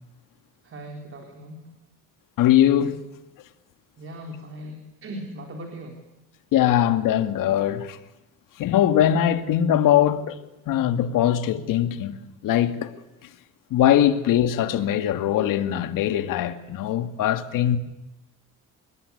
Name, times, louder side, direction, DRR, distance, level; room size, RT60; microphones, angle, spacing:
voice 1, 0.6-1.7 4.0-6.0, equal, 40° right, 4.0 m, -39 dB
voice 2, 2.4-3.0 6.5-8.0 8.6-10.4 10.7-12.2 12.4-12.9 13.7-17.8, left 11 dB, 75° left, 2.1 m, -21 dB
27.5 x 21.0 x 10.0 m
cardioid pair, 130°, 33 cm